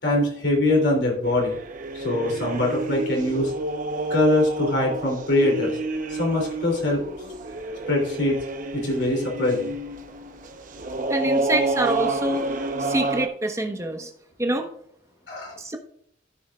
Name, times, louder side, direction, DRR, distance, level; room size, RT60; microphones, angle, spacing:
voice 1, 0.0-1.6 1.9-3.5 4.1-5.8 6.1-7.0 7.9-8.4 8.7-9.7 15.3-15.5, left 1 dB, 70° left, -1 dB, 3.1 m, -23 dB
sound 1, 1.2-13.3, right 2 dB, 45° right, 0.9 m, -29 dB
voice 2, 11.1-12.5 12.8-14.1 14.4-14.7 15.6-15.8, right 1 dB, 15° right, 5 dB, 1.2 m, -26 dB
14.5 x 6.2 x 2.4 m, 0.65 s
head